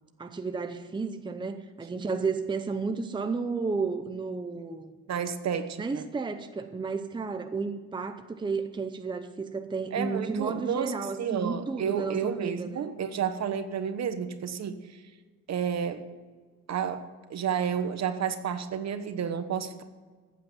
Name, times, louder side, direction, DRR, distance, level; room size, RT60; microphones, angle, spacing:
voice 1, 0.2-4.9 5.8-12.9, right 4 dB, 15° right, 8 dB, 0.7 m, -32 dB
voice 2, 5.1-6.0 9.9-10.9 11.2-15.0 15.5-16.0 16.7-17.0 17.3-19.8, right 7 dB, 60° right, 10 dB, 1.2 m, -31 dB
14.5 x 8.6 x 7.2 m, 1.4 s
wide cardioid pair, 160°, 30 cm